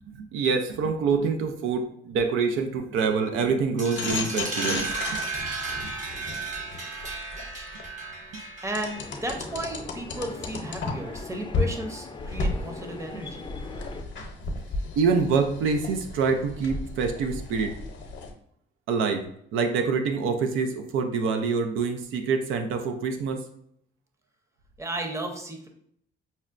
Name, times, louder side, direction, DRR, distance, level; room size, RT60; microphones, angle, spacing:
voice 1, 0.0-5.2 8.3-8.4 15.0-17.7 18.9-19.3 19.5-23.5, right 5 dB, 90° right, 6 dB, 0.5 m, -26 dB
sound 1, 3.8-9.3, right 4 dB, 40° right, 1.0 m, -34 dB
sound 2, 4.0-7.9 8.7-11.2 11.5-11.7 12.2-18.3, left 3 dB, 65° left, 0.7 m, -33 dB
voice 2, 8.6-13.5 24.8-25.7, right 1 dB, 15° right, 3 dB, 0.7 m, -34 dB
sound 3, 9.0-14.0, left 4 dB, 25° left, 0.4 m, -41 dB
5.5 x 2.1 x 2.4 m, 0.68 s
cardioid pair, 90°, 20 cm